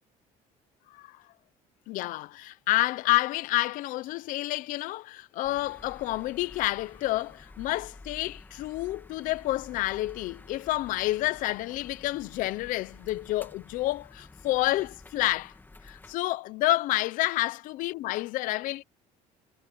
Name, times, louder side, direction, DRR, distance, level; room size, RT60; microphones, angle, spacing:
voice 1, 1.9-15.5 15.8-18.8, left 17 dB, 75° left, 0.8 m, -29 dB
sound 1, 5.4-16.1, left 2 dB, 15° left, 2.7 m, -50 dB
cardioid pair, 125°, 14 cm